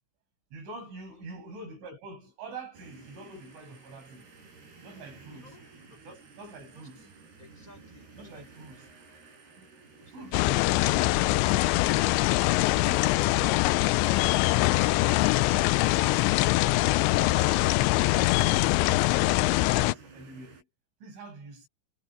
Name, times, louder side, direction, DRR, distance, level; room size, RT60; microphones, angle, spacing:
voice 1, 0.5-4.3 4.8-5.5 6.1-7.1 8.2-8.8 9.6-9.7 10.1-11.5 12.8-13.9 14.9-17.8 18.2-20.7 21.0-21.7, right 3 dB, 85° right, 10.5 m, -46 dB
voice 2, 1.1-1.4 4.8-6.0 6.7-7.1 7.4-8.7 10.0-10.7, left 1 dB, 15° left, 6.4 m, -57 dB
sound 1, 2.7-20.6, right 4 dB, 60° right, 8.2 m, -53 dB
sound 2, 10.3-19.9, left 19 dB, 80° left, 2.9 m, -23 dB
omnidirectional pair, 5.4 m